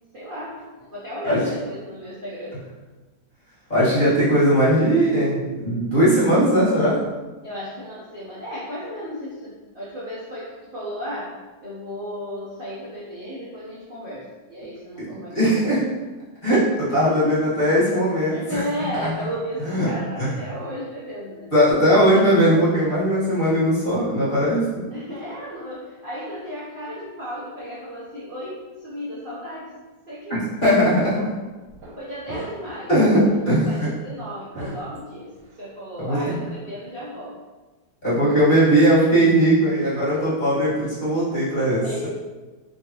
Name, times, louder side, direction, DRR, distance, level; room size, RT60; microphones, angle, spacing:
voice 1, 0.1-2.6 7.4-11.4 11.6-15.6 17.1-17.4 18.3-21.5 21.9-22.2 24.9-29.7 30.1-31.2 32.0-33.0 33.7-35.3 35.6-37.3 39.3-39.4 41.8-42.1, equal, 45° right, -9 dB, 0.8 m, -34 dB
voice 2, 3.7-7.0 15.0-15.1 15.3-15.8 16.4-18.6 19.0-19.1 19.6-19.9 20.2-20.3 21.5-24.7 30.3-31.2 32.9-33.9 34.6-34.8 36.0-36.4 38.0-42.1, equal, 30° left, -11 dB, 1.7 m, -19 dB
sound 1, 30.6-30.7 31.6-32.0 32.3-32.8 33.2-33.4 34.5-35.6, right 1 dB, 75° right, 1.6 m, -38 dB
3.9 x 3.5 x 2.9 m, 1.2 s
omnidirectional pair, 1.9 m